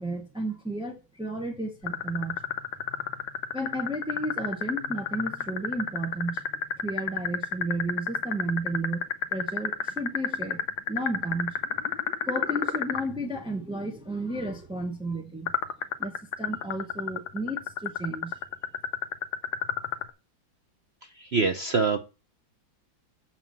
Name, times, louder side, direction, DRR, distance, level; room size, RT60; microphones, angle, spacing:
voice 1, 0.0-2.4 3.5-6.4 6.8-9.0 9.3-11.6 12.3-15.5 16.0-18.4, right 1 dB, 5° right, 0.4 m, -33 dB
sound 1, 1.9-13.0 15.5-20.1, left 8 dB, 70° left, 1.4 m, -30 dB
voice 2, 21.2-22.0, right 4 dB, 60° right, 0.6 m, -24 dB
7.0 x 5.9 x 7.1 m
omnidirectional pair, 2.2 m